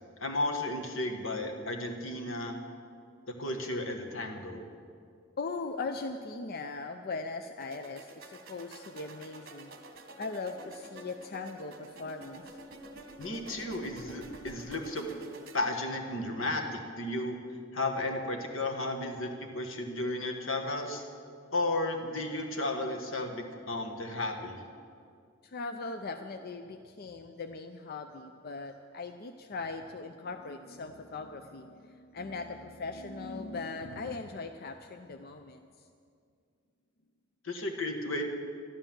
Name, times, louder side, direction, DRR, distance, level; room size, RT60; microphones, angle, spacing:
voice 1, 0.2-2.6 3.4-4.6 13.2-15.1 15.5-17.4 17.7-21.0 21.5-24.6 37.4-38.2, left 2 dB, 85° left, 3 dB, 1.5 m, -33 dB
voice 2, 5.4-9.7 10.2-12.6 25.4-35.7, left 3 dB, 50° left, 6 dB, 0.5 m, -39 dB
sound 1, 7.6-15.6, right 2 dB, 50° right, 1.3 m, -49 dB
12.5 x 11.5 x 7.4 m, 2.3 s
head